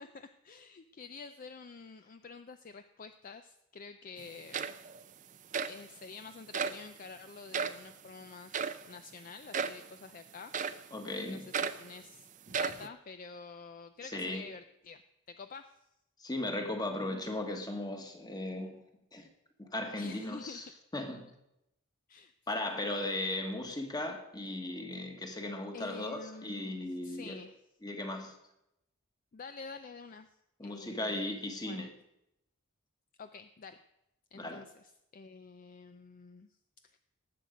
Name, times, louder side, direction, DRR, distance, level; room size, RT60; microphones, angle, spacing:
voice 1, 0.0-4.7 5.7-11.0 11.3-11.4 11.8-15.0 15.3-15.7 20.0-20.6 22.1-23.1 25.7-27.6 29.3-30.4 30.6-31.3 31.7-31.9 33.2-33.8 34.3-36.5 36.9-37.0, left 4 dB, 40° left, 0.4 m, -49 dB
sound 1, 4.2-4.3 4.5-5.0 5.5-5.8 6.5-6.8 7.5-7.8 8.5-8.8 9.5-9.8 10.5-10.9 11.5-11.9 12.5-12.9, right 6 dB, 35° right, 0.5 m, -34 dB
voice 2, 10.9-11.5 14.0-14.4 16.2-18.8 19.1-19.3 19.6-21.3 22.5-27.4 27.8-28.3 30.6-31.9 34.3-34.6, left 1 dB, 20° left, 1.3 m, -37 dB
18.5 x 7.8 x 5.1 m
head